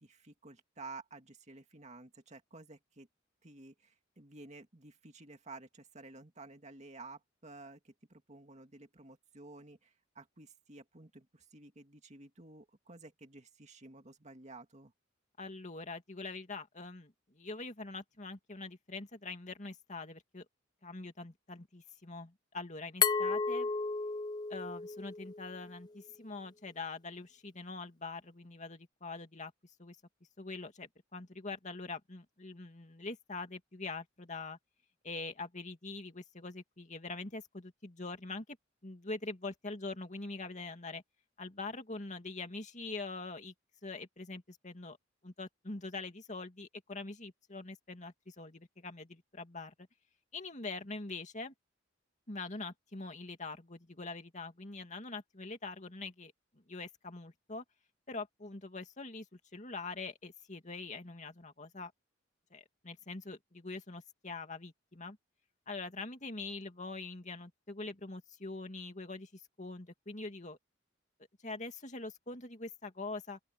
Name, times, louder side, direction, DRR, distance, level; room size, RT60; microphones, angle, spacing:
voice 1, 0.0-3.1 3.4-14.9, right 3 dB, 35° right, 2.3 m, -52 dB
voice 2, 15.4-20.5 20.8-23.7 24.5-29.5 29.8-30.0 30.4-34.6 35.0-38.6 38.8-41.0 41.4-43.5 43.8-45.0 45.2-49.7 50.3-51.5 52.3-56.3 56.7-57.6 58.1-61.9 62.5-65.2 65.7-70.6 71.4-73.4, left 3 dB, 35° left, 2.4 m, -44 dB
Glass, 23.0-25.8, left 5 dB, 20° left, 0.5 m, -33 dB
open air
head